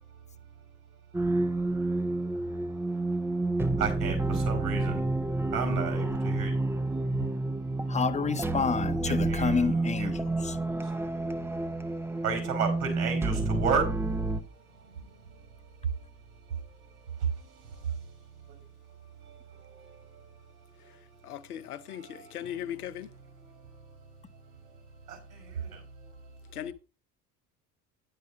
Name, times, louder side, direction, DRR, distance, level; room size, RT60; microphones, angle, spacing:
sound 1, 1.1-14.4, right 2 dB, 5° right, 0.6 m, -29 dB
voice 1, 3.3-5.0 5.5-6.7 6.9-8.0 9.3-10.1 10.6-10.9 11.3-18.1 18.4-18.6 19.0-21.2 21.8-24.0 24.6-24.8 25.1-26.1, right 6 dB, 70° right, 5.0 m, -36 dB
voice 2, 7.9-10.6, left 5 dB, 15° left, 0.9 m, -29 dB
voice 3, 21.2-23.1 26.5-26.7, left 11 dB, 70° left, 0.9 m, -38 dB
10.5 x 6.7 x 4.7 m
figure-of-eight pair, 65°, 47 cm